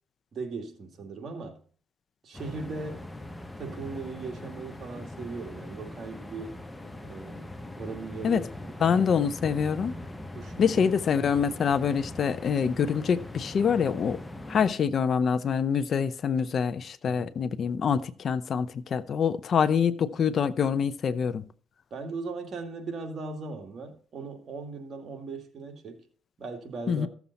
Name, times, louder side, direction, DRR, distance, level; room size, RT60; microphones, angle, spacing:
voice 1, 0.3-1.6 2.2-3.0 3.6-6.6 7.0-7.5 7.8-8.5 8.8-9.0 10.3-10.8 17.1-17.3 21.9-26.0 26.4-27.1, right 4 dB, 55° right, 2.2 m, -38 dB
sound 1, 2.3-14.7, left 1 dB, 10° left, 0.9 m, -41 dB
voice 2, 8.8-9.9 10.6-14.2 14.5-21.4 26.9-27.1, left 7 dB, 55° left, 0.6 m, -25 dB
14.0 x 7.1 x 4.1 m
cardioid pair, 90°, 0 cm